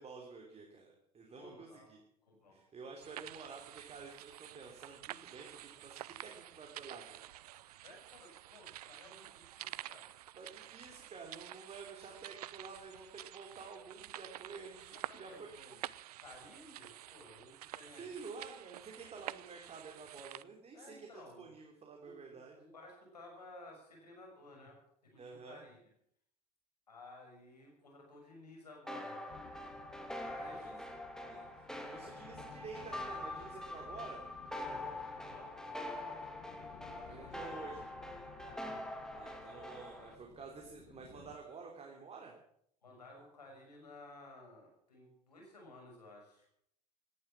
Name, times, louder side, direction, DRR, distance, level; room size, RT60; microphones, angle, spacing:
voice 1, 0.0-2.0 2.5-7.2 10.3-15.8 18.0-22.6 25.2-25.6 30.5-30.8 31.2-34.2 37.0-37.9 39.1-42.3, right 4 dB, 30° right, 1 dB, 3.4 m, -50 dB
voice 2, 1.4-1.9 2.2-2.6 7.8-10.1 14.9-15.7 16.2-18.2 20.7-21.5 22.0-24.8 25.0-25.8 26.9-29.2 30.2-30.7 34.6-36.2 36.5-37.4 38.4-38.6 42.8-46.5, left 2 dB, 85° left, 0 dB, 6.3 m, -56 dB
sound 1, 3.0-20.4, right 14 dB, 75° right, 0.5 m, -49 dB
sound 2, 28.9-40.2, left 1 dB, 5° left, 2.8 m, -44 dB
sound 3, 29.3-41.4, left 10 dB, 50° left, 1.6 m, -58 dB
17.5 x 11.0 x 7.4 m, 0.70 s
figure-of-eight pair, 65°, 20 cm